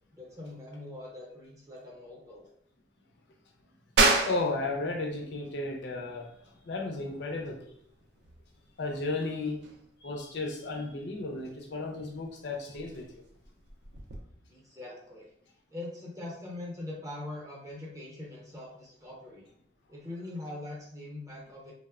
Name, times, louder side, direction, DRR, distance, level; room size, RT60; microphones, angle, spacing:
voice 1, 0.1-2.5 14.5-15.3 15.7-19.4 19.9-21.7, left 2 dB, 20° right, -3 dB, 0.6 m, -42 dB
sound 1, 4.0-14.2, right 3 dB, 65° right, 0.4 m, -34 dB
voice 2, 4.3-7.8 8.8-9.6 10.0-13.2, left 2 dB, 70° left, 2 dB, 0.5 m, -34 dB
3.0 x 2.0 x 2.3 m, 0.66 s
head